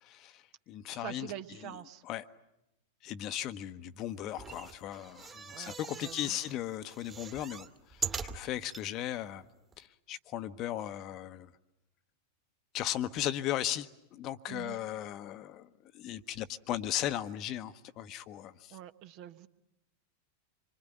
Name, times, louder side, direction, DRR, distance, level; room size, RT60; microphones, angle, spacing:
voice 1, 0.0-1.3 1.6-1.7 2.0-2.2 3.0-9.4 9.8-11.5 12.7-15.7 15.9-18.8, left 12 dB, 35° left, 1.0 m, -37 dB
voice 2, 0.9-2.0 5.5-6.4 14.5-14.8 18.7-19.5, right 12 dB, 40° right, 1.2 m, -45 dB
sound 1, 4.3-6.5 6.9-8.8 9.4-9.5 9.7-9.8, right 5 dB, 20° right, 2.0 m, -41 dB
26.5 x 24.5 x 9.2 m
figure-of-eight pair, 90°, 0 cm